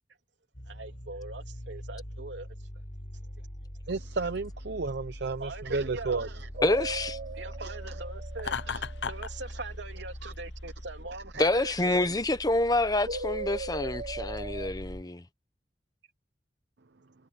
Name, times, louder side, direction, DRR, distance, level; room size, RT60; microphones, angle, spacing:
sound 1, 0.5-15.0, equal, 50° left, 7.5 m, -43 dB
voice 1, 0.7-2.7 3.4-3.5 5.4-6.2 7.3-12.2, right 3 dB, 85° right, 3.1 m, -42 dB
voice 2, 3.9-6.3 7.6-7.7 10.2-10.3 11.3-11.5, right 3 dB, 65° right, 0.8 m, -32 dB
sound 2, 6.5-9.0 13.0-14.7, right 3 dB, 50° right, 1.6 m, -38 dB
voice 3, 6.6-7.2 11.4-15.2, left 2 dB, 20° left, 1.0 m, -27 dB
Laughter, 8.4-9.3, left 6 dB, 70° left, 0.9 m, -33 dB
head